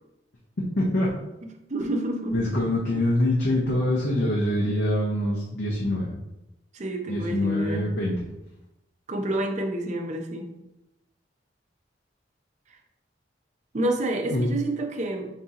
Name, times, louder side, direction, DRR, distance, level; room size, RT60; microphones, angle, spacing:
voice 1, 0.8-1.1 2.3-6.1 7.1-8.1 14.3-14.5, left 1 dB, 60° left, -4 dB, 0.7 m, -24 dB
voice 2, 1.4-2.4 6.7-7.9 9.1-10.5 12.7-12.8 13.7-15.3, right 1 dB, 40° right, 2 dB, 0.6 m, -29 dB
4.0 x 2.8 x 3.6 m, 0.92 s
head